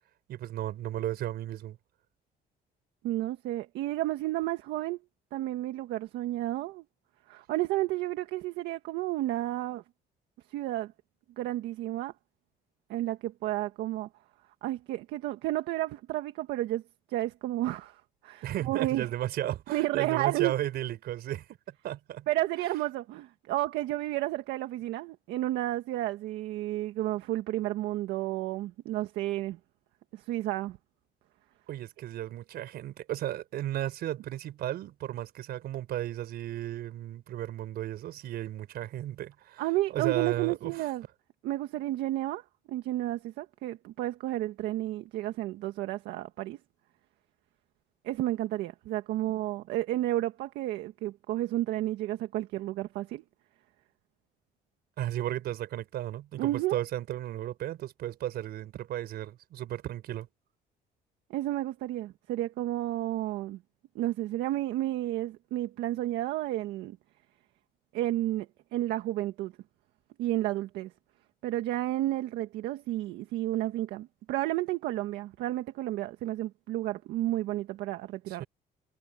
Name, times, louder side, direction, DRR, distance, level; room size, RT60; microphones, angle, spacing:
voice 1, 0.3-1.8 18.4-22.3 31.7-39.6 39.9-40.7 55.0-60.3 78.3-78.5, right 13 dB, 70° right, 4.7 m, -34 dB
voice 2, 3.0-5.0 5.3-6.8 7.3-9.8 10.5-10.9 11.4-12.1 12.9-14.1 14.6-16.8 17.1-19.1 19.7-20.5 22.3-29.6 30.1-30.8 39.6-41.0 41.4-46.6 48.0-53.2 56.4-56.8 61.3-63.6 63.9-67.0 67.9-69.5 70.2-70.9 71.4-78.4, right 15 dB, 85° right, 1.7 m, -31 dB
cardioid pair, 110°, 17 cm